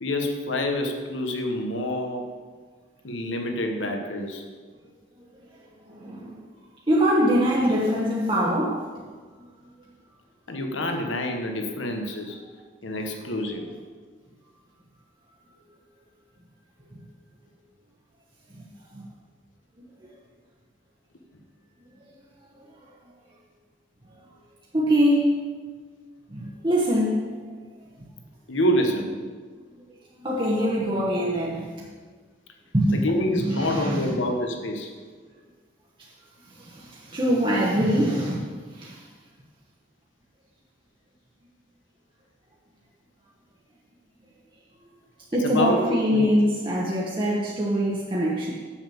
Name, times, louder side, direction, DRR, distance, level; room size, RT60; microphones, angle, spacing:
voice 1, 0.0-2.3 3.0-4.4 10.5-12.4 12.8-13.7 28.5-29.2 30.6-30.8 32.9-34.9 45.4-46.4, left 1 dB, 85° left, 3 dB, 1.2 m, -27 dB
voice 2, 5.9-6.3 6.9-8.8 18.5-18.6 18.9-19.0 24.7-25.4 26.3-27.4 30.2-31.7 32.7-33.0 33.4-34.1 36.5-38.4 38.7-39.0 45.3-48.5, equal, 25° right, -5 dB, 1.0 m, -23 dB
7.2 x 7.0 x 7.0 m, 1.5 s
head